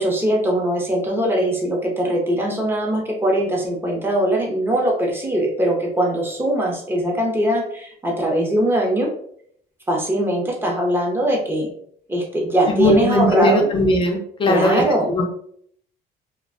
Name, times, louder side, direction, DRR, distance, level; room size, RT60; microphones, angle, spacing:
voice 1, 0.0-9.1 9.9-11.7 12.1-13.7 14.5-15.1, right 1 dB, 15° right, -1 dB, 0.7 m, -21 dB
voice 2, 12.7-15.3, left 1 dB, 30° left, 2 dB, 0.5 m, -19 dB
2.4 x 2.2 x 2.4 m, 0.64 s
cardioid pair, 110°, 17 cm